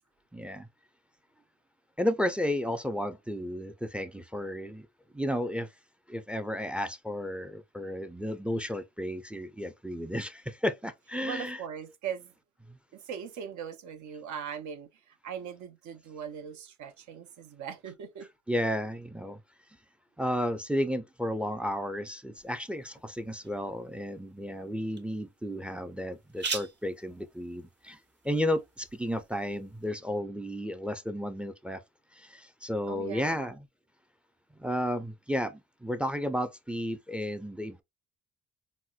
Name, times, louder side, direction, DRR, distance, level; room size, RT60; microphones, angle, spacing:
voice 1, 0.3-0.7 2.0-4.9 5.1-5.7 6.1-11.6 12.7-12.8 18.5-19.4 20.2-28.0 28.2-31.8 32.1-33.6 34.6-37.8, equal, 5° right, 0.3 m, -33 dB
voice 2, 11.2-12.3 12.9-18.3 32.9-33.5, right 8 dB, 75° right, 0.7 m, -40 dB
sound 1, 22.4-29.9, right 4 dB, 35° right, 0.8 m, -44 dB
4.2 x 2.1 x 2.3 m
cardioid pair, 90°, 30 cm